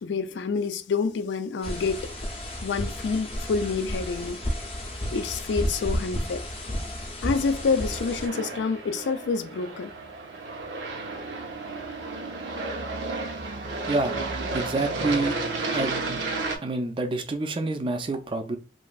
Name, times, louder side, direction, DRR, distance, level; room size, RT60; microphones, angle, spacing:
voice 1, 0.0-2.0 2.6-4.4 5.1-6.4 7.2-9.9, left 4 dB, 85° left, 0.4 m, -27 dB
sound 1, 1.6-8.3, equal, 30° left, 0.6 m, -32 dB
Aircraft, 7.3-16.6, right 3 dB, 85° right, 0.5 m, -32 dB
voice 2, 14.5-15.4 15.7-16.2 16.6-18.6, right 2 dB, 30° right, 0.3 m, -27 dB
2.9 x 2.5 x 2.3 m
head